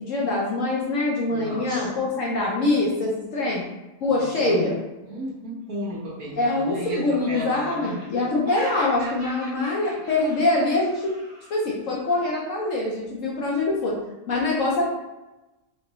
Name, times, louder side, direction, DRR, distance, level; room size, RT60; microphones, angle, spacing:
voice 1, 0.0-3.6 4.0-4.7 6.3-11.2 11.5-14.0 14.3-14.8, left 2 dB, 60° left, -3 dB, 0.9 m, -24 dB
voice 2, 1.3-1.9 4.0-4.7 5.0-7.0 7.3-8.0, equal, 60° right, -5 dB, 1.6 m, -34 dB
Laughter, 5.9-6.8 7.1-11.5, right 1 dB, 40° right, 1.3 m, -41 dB
3.9 x 3.4 x 3.0 m, 1.0 s
omnidirectional pair, 1.7 m